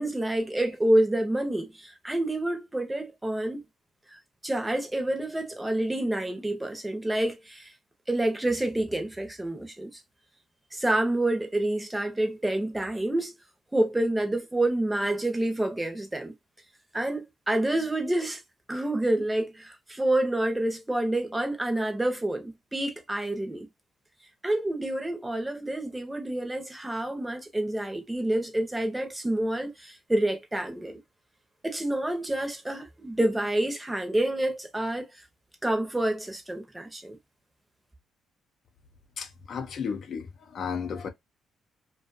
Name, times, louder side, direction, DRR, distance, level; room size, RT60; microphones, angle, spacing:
voice 1, 0.0-3.6 4.1-7.7 8.1-10.0 10.7-13.3 13.7-16.3 16.9-18.4 18.7-23.7 24.4-31.0 31.6-35.1 35.6-37.2, right 1 dB, 10° right, 0.8 m, -28 dB
voice 2, 39.2-41.1, left 6 dB, 60° left, 0.6 m, -34 dB
2.4 x 2.3 x 2.5 m
cardioid pair, 90°, 0 cm